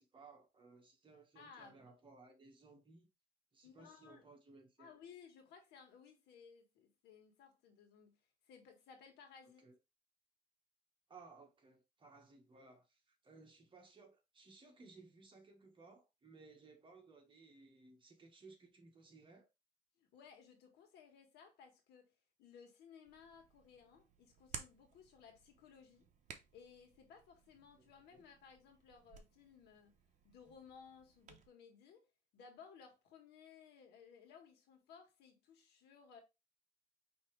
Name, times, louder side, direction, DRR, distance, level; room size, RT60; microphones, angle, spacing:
voice 1, 0.0-3.1 3.5-4.9 9.6-9.7 11.1-19.5 28.1-28.2, right 3 dB, 30° right, 1.5 m, -61 dB
voice 2, 1.3-1.9 3.6-4.2 4.8-8.2 8.4-9.7 20.0-22.1 22.4-26.1 26.5-30.0 30.2-32.1 32.3-36.2, left 6 dB, 80° left, 1.5 m, -60 dB
Hands, 23.0-31.5, right 6 dB, 45° right, 0.9 m, -57 dB
5.4 x 3.0 x 3.2 m
cardioid pair, 110°, 17 cm